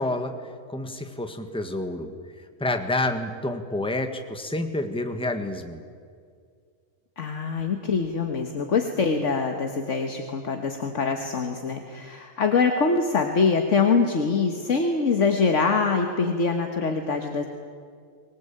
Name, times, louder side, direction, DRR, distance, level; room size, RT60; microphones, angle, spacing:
voice 1, 0.0-5.8, left 2 dB, 5° left, 6 dB, 1.5 m, -29 dB
voice 2, 7.2-17.5, left 4 dB, 65° left, 4 dB, 1.8 m, -24 dB
24.0 x 19.5 x 8.8 m, 2.1 s
omnidirectional pair, 1.4 m